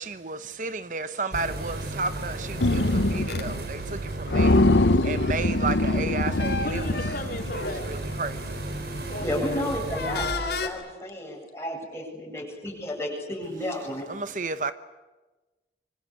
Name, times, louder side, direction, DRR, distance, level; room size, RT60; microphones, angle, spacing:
voice 1, 0.0-6.9 7.5-9.1 14.1-14.7, right 3 dB, 45° right, 0.9 m, -33 dB
sound 1, 1.3-10.3, right 2 dB, 60° right, 5.3 m, -34 dB
sound 2, 2.6-3.6 3.9-4.0 4.3-7.7, left 2 dB, 80° left, 1.0 m, -23 dB
sound 3, 3.3-3.5 5.5-8.1 8.7-8.9 9.8-10.7, left 4 dB, 65° left, 3.6 m, -33 dB
voice 2, 6.6-8.0 9.1-9.7, left 1 dB, 50° left, 4.7 m, -35 dB
voice 3, 9.0-14.1, left 1 dB, 15° left, 7.8 m, -32 dB
26.5 x 24.5 x 8.7 m
head